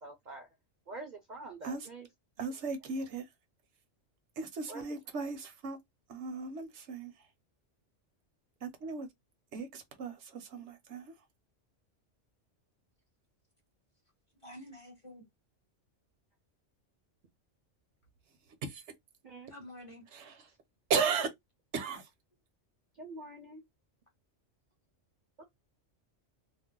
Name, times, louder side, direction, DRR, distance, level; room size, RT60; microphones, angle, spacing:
voice 1, 0.0-0.5 0.9-2.1 2.4-2.6 4.7-5.2 19.2-19.5 22.9-23.6 25.4-25.5, right 2 dB, 50° right, 0.6 m, -46 dB
voice 2, 2.4-3.3 4.4-5.8 6.1-7.1 8.6-9.1 9.5-11.1 18.6-18.8 20.1-20.3 20.9-21.3 21.7-22.1, right 5 dB, 75° right, 1.0 m, -35 dB
voice 3, 14.4-15.3 19.5-20.1 20.5-20.6, left 1 dB, 30° left, 0.8 m, -49 dB
2.6 x 2.0 x 3.6 m
omnidirectional pair, 1.2 m